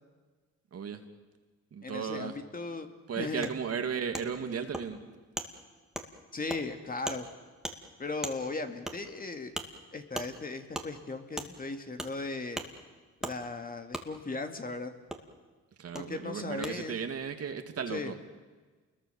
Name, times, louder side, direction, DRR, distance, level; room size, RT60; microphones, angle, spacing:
voice 1, 0.7-1.0 1.7-2.4 3.1-5.0 15.8-18.1, right 6 dB, 50° right, 7 dB, 2.3 m, -35 dB
voice 2, 1.8-2.9 3.2-3.5 6.3-7.3 8.0-9.5 9.9-12.6 13.2-14.9 15.9-17.0 17.9-18.1, left 3 dB, 30° left, 6 dB, 2.3 m, -37 dB
Wood, 3.4-3.5 4.1-4.2 4.7-4.8 5.4-5.5 5.9-6.1 6.5-6.6 7.1-7.2 7.6-7.8 8.2-8.4 8.9-9.0 9.5-9.7 10.1-10.3 10.7-10.9 11.4-11.5 12.0-12.1 12.5-12.7 13.2-13.3 13.9-14.0 15.1-15.2 15.9-16.0 16.6-16.7, right 1 dB, ahead, 2.4 m, -36 dB
28.5 x 21.5 x 7.1 m, 1.3 s
cardioid pair, 90°, 30 cm